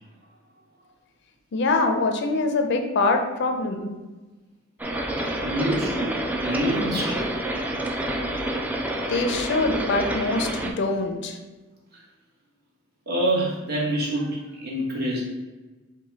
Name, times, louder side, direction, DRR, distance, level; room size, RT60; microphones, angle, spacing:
voice 1, 1.5-3.9 9.1-11.4, left 3 dB, 60° left, 5 dB, 0.5 m, -24 dB
sound 1, 4.8-10.7, right 1 dB, 10° right, 0.3 m, -28 dB
voice 2, 5.4-6.1 6.4-7.6 11.9-12.0 13.1-15.2, right 1 dB, 55° right, -4 dB, 1.3 m, -26 dB
4.8 x 2.2 x 3.9 m, 1.2 s
head